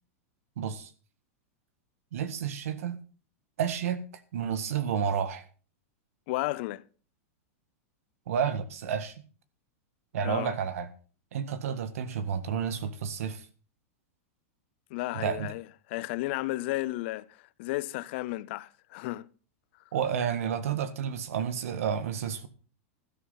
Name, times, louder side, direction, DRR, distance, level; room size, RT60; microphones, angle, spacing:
voice 1, 0.6-0.9 2.1-3.0 3.6-4.0 4.3-5.4 8.3-9.2 10.1-10.9 11.3-13.5 15.1-15.5 19.9-22.5, right 7 dB, 75° right, 1.7 m, -30 dB
voice 2, 6.3-6.8 10.2-10.6 14.9-19.3, left 18 dB, 55° left, 0.6 m, -33 dB
12.5 x 11.5 x 4.1 m
supercardioid pair, 145°, 8 cm